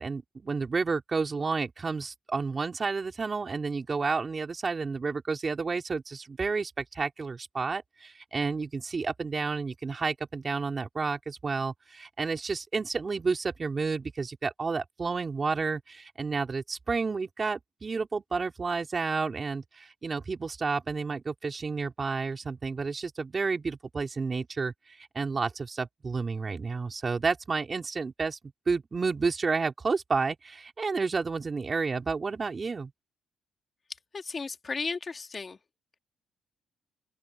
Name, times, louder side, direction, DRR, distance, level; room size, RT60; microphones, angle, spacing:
voice 1, 0.0-28.4 28.7-32.9, right 4 dB, 35° right, 3.7 m, -31 dB
voice 2, 34.1-35.6, left 4 dB, 35° left, 2.2 m, -34 dB
open air
cardioid pair, 90°, 0 cm